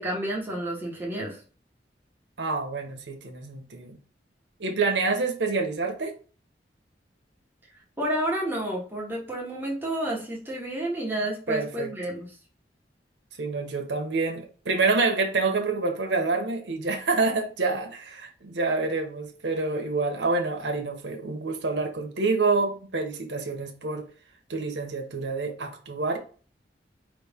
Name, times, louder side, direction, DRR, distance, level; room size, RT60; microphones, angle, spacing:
voice 1, 0.0-1.4 8.0-12.4, right 1 dB, 10° right, 1.2 m, -30 dB
voice 2, 2.4-4.0 4.6-6.1 11.5-11.9 13.4-24.1 24.5-26.2, right 3 dB, 85° right, 0.9 m, -27 dB
4.8 x 3.1 x 3.5 m
head